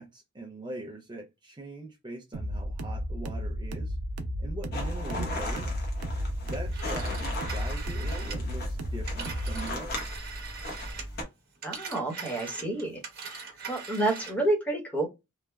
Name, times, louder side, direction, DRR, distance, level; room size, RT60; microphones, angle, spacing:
voice 1, 0.0-4.0 4.4-5.7 6.4-10.1, right 1 dB, 20° right, 0.5 m, -42 dB
sound 1, 2.3-9.7, equal, 80° right, 0.5 m, -33 dB
sound 2, 4.7-11.2, left 1 dB, 45° left, 0.9 m, -37 dB
Telephone, 6.5-11.2 11.5-14.5, right 5 dB, 45° right, 1.1 m, -42 dB
voice 2, 11.6-13.0 13.3-15.1, right 2 dB, 5° left, 1.0 m, -29 dB
3.1 x 2.1 x 2.2 m
head